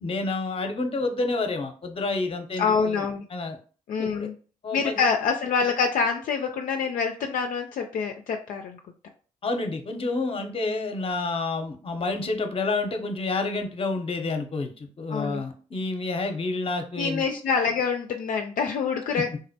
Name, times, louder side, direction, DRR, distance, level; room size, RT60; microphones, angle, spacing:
voice 1, 0.0-3.0 3.3-3.6 4.0-4.3 4.6-5.0 9.4-17.2, left 3 dB, 40° left, 6 dB, 0.7 m, -29 dB
voice 2, 2.6-3.2 3.9-4.3 4.7-8.8 15.1-15.4 17.0-19.4, left 5 dB, 65° left, 3 dB, 0.4 m, -26 dB
3.7 x 2.1 x 2.7 m, 0.39 s
supercardioid pair, 50°, 15 cm